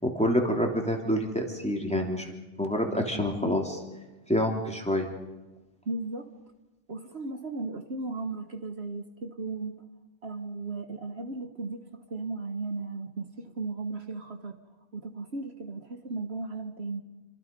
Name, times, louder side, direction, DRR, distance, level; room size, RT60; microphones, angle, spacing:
voice 1, 0.0-2.3 2.6-3.8 4.3-5.1, equal, 5° left, 1 dB, 3.0 m, -27 dB
voice 2, 5.8-6.3 6.9-9.8 10.2-14.6 14.9-17.0, right 3 dB, 60° right, 6 dB, 1.6 m, -36 dB
27.5 x 25.0 x 5.4 m, 1.1 s
omnidirectional pair, 1.3 m